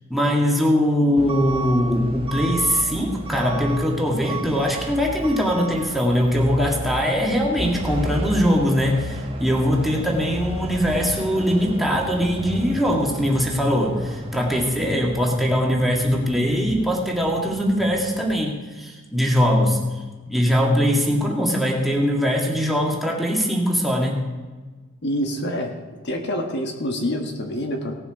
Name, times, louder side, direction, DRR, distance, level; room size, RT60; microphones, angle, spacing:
voice 1, 0.1-19.8 20.3-24.2, equal, ahead, -2 dB, 1.9 m, -21 dB
Truck / Alarm, 1.2-18.4, right 1 dB, 30° right, 0.9 m, -33 dB
voice 2, 25.0-25.7 26.0-28.0, equal, 60° left, 3 dB, 1.3 m, -26 dB
18.0 x 7.1 x 4.8 m, 1.3 s
head